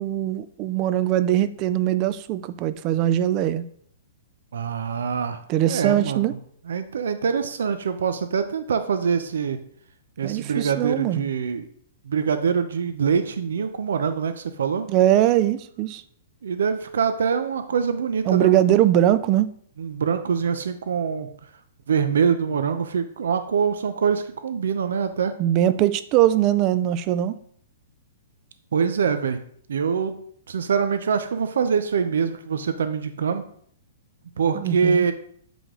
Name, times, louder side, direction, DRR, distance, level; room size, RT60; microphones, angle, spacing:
voice 1, 0.0-3.6 5.5-6.3 10.2-11.3 14.9-16.0 18.3-19.5 25.4-27.4 34.5-35.0, right 12 dB, 30° right, 14 dB, 0.4 m, -21 dB
voice 2, 4.5-5.4 5.7-6.4 6.7-9.6 10.2-11.7 12.0-14.9 16.4-18.6 19.8-21.3 21.9-25.3 28.7-29.4 29.7-30.2 30.5-33.4 34.4-35.1, right 6 dB, 85° right, 9 dB, 0.7 m, -24 dB
7.7 x 5.1 x 3.8 m, 0.63 s
hypercardioid pair, 160°, 0 cm